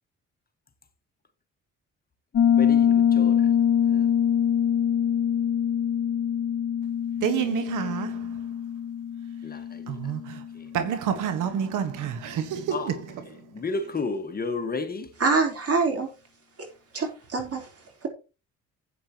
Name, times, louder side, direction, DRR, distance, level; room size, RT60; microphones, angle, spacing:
Piano, 2.3-10.9, left 8 dB, 60° left, 1.7 m, -24 dB
voice 1, 2.5-3.4 3.9-4.1 9.4-9.8 12.7-12.9 13.5-15.1, left 3 dB, 30° left, 1.6 m, -32 dB
voice 2, 7.2-8.4 9.9-10.4 10.7-13.4, right 9 dB, 85° right, 1.4 m, -29 dB
voice 3, 15.2-16.1 16.9-17.7, right 4 dB, 50° right, 3.8 m, -24 dB
12.5 x 8.5 x 3.0 m
cardioid pair, 90°, 30 cm